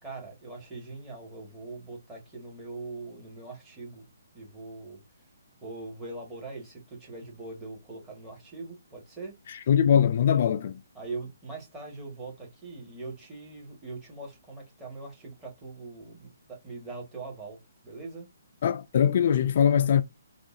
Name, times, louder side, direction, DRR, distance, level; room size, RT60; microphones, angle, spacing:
voice 1, 0.0-4.1 4.3-5.0 5.6-9.3 10.9-18.3, right 3 dB, 10° right, 1.5 m, -42 dB
voice 2, 9.5-10.8 18.6-20.0, left 8 dB, 45° left, 0.3 m, -22 dB
3.6 x 2.3 x 2.6 m
hypercardioid pair, 155°, 0 cm